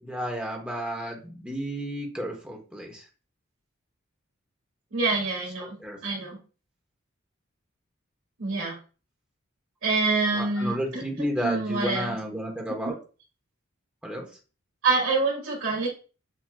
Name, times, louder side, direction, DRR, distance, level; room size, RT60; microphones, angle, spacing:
voice 1, 0.0-3.0 5.6-6.0 10.3-12.9 14.0-14.3, equal, 5° right, 0 dB, 1.0 m, -32 dB
voice 2, 4.9-5.8 6.0-6.4 8.4-8.7 9.8-11.0 11.4-12.2 12.8-12.9 14.8-15.9, right 3 dB, 90° right, -2 dB, 2.3 m, -26 dB
7.4 x 2.9 x 2.2 m, 0.35 s
head